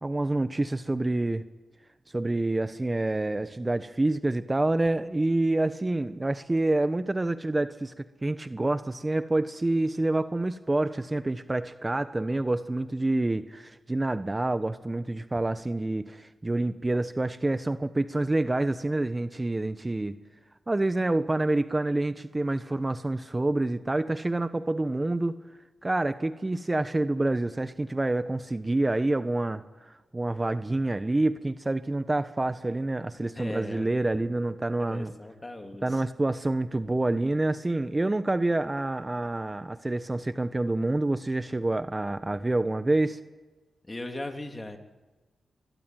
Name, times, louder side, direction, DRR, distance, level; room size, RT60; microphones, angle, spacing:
voice 1, 0.0-1.4 2.1-20.2 20.7-25.4 25.8-35.1 35.8-43.2, right 2 dB, 25° right, 11 dB, 1.1 m, -27 dB
voice 2, 33.3-33.9 34.8-36.0 43.8-44.8, left 1 dB, 25° left, 5 dB, 3.3 m, -38 dB
23.5 x 21.5 x 9.3 m, 1.2 s
cardioid pair, 55°, 0 cm